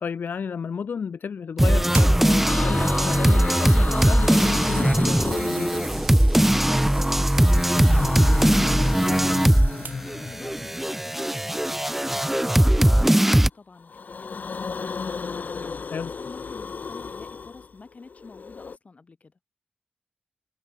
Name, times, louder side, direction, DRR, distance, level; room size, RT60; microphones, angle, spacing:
voice 1, 0.0-5.9 15.9-16.1, left 6 dB, 90° left, 1.1 m, -32 dB
sound 1, 1.6-9.8 10.0-13.5, right 1 dB, 5° right, 0.4 m, -20 dB
sound 2, 1.9-10.3 11.0-11.2, right 5 dB, 75° right, 6.2 m, -42 dB
sound 3, 2.5-6.4 7.2-10.9 12.3-13.4 13.8-18.8, left 5 dB, 65° left, 2.4 m, -34 dB
voice 2, 6.7-9.4 9.7-15.0 15.3-19.3, left 4 dB, 50° left, 5.3 m, -48 dB
wide cardioid pair, 105°, 3 cm